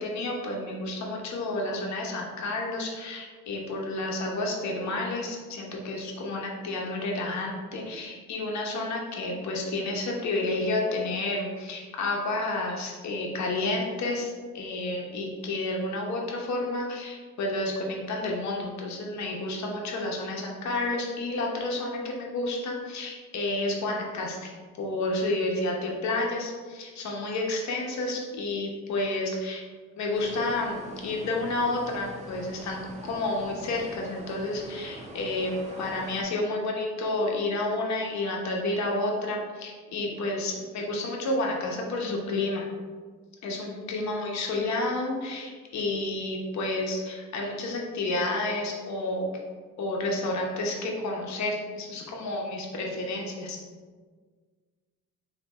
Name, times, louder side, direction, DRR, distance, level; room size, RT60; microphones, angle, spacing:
voice 1, 0.0-29.6 30.0-42.7 43.4-49.3 49.8-53.6, left 2 dB, 65° left, -1 dB, 0.9 m, -30 dB
sound 1, 30.1-36.2, right 1 dB, 25° right, 0.6 m, -44 dB
3.3 x 2.9 x 4.1 m, 1.5 s
cardioid pair, 90°, 30 cm